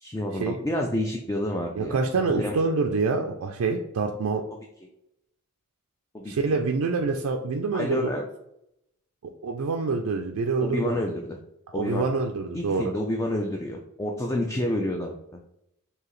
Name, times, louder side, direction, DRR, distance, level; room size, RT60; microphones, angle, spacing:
voice 1, 0.0-2.0 2.3-2.6 4.5-4.6 6.1-6.3 7.7-8.2 10.6-11.4 11.7-12.1 12.5-15.4, left 1 dB, 15° left, 1 dB, 0.3 m, -29 dB
voice 2, 1.8-4.4 6.3-8.1 9.4-11.0 11.7-12.9, right 4 dB, 75° right, 3 dB, 0.4 m, -26 dB
4.8 x 2.8 x 3.0 m, 0.80 s
head